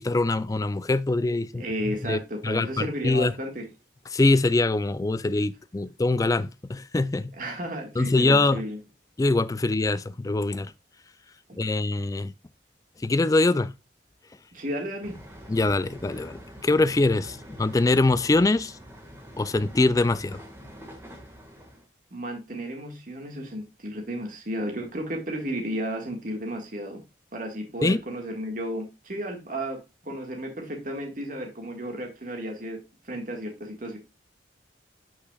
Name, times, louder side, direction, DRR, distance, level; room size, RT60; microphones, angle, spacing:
voice 1, 0.0-2.2 2.4-3.4 4.1-7.3 8.0-8.6 9.2-10.7 11.6-12.3 13.0-13.7 15.5-18.8 19.4-20.4 27.8-28.0, left 2 dB, 20° left, 0.3 m, -23 dB
voice 2, 1.6-3.7 7.4-8.8 14.5-15.2 22.1-27.0 27.3-29.8 30.0-34.0, right 1 dB, 45° right, 1.7 m, -33 dB
sound 1, 15.0-21.8, equal, 15° right, 1.6 m, -45 dB
8.1 x 6.1 x 2.3 m
head